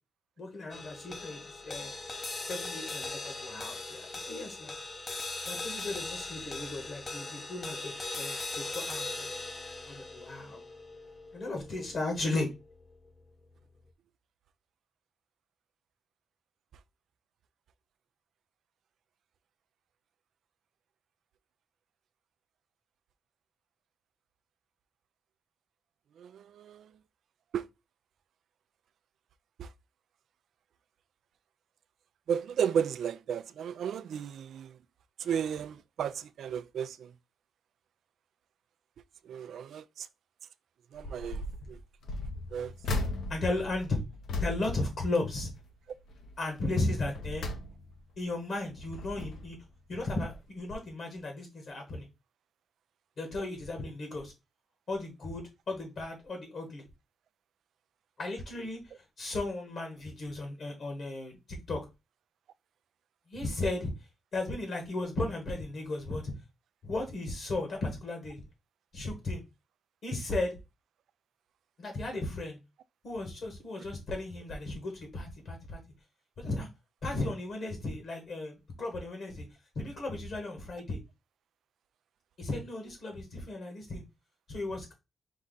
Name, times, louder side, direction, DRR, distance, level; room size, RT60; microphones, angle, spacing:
voice 1, 0.4-1.9 2.5-4.7 5.5-9.3 9.9-10.6 11.3-12.5 43.3-44.0 44.4-45.5 46.4-47.4 48.2-49.6 49.9-52.1 53.2-54.3 54.9-56.8 58.2-61.8 63.3-63.9 64.3-66.3 66.8-68.4 68.9-69.4 70.0-70.6 71.8-72.6 73.0-75.8 76.4-76.7 77.0-79.5 79.7-81.0 82.4-84.0 84.5-84.9, left 2 dB, 45° left, 1.4 m, -35 dB
sound 1, 0.7-13.2, left 3 dB, 25° left, 0.6 m, -40 dB
voice 2, 26.2-26.8 27.5-27.6 32.3-34.7 35.2-37.0 39.3-39.8 40.9-41.4 42.5-42.7, right 8 dB, 65° right, 0.4 m, -33 dB
sound 2, 40.9-41.6 42.0-45.7 46.1-46.4 46.9-48.2 48.7-49.6 50.3-50.4 50.7-50.8, left 2 dB, 70° left, 0.9 m, -37 dB
5.4 x 2.4 x 3.8 m
cardioid pair, 150°, 0 cm